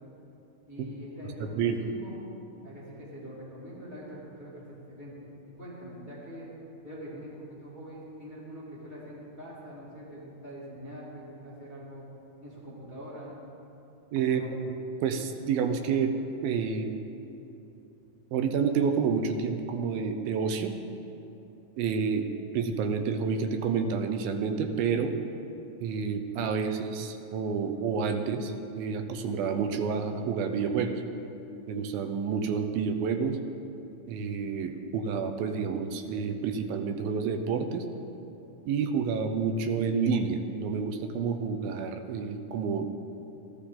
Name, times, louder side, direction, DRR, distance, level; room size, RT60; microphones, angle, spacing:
voice 1, 0.7-2.1 2.6-6.5 6.8-12.1 12.4-13.3 14.2-14.5, equal, 20° left, -7 dB, 1.3 m, -44 dB
voice 2, 14.1-14.4 15.0-16.1 16.4-16.9 18.3-20.7 21.8-22.3 22.5-25.1 25.8-30.9 31.7-33.4 34.1-37.9 38.7-42.9, right 6 dB, 85° right, 7 dB, 2.5 m, -29 dB
15.0 x 11.5 x 3.7 m, 2.9 s
omnidirectional pair, 4.1 m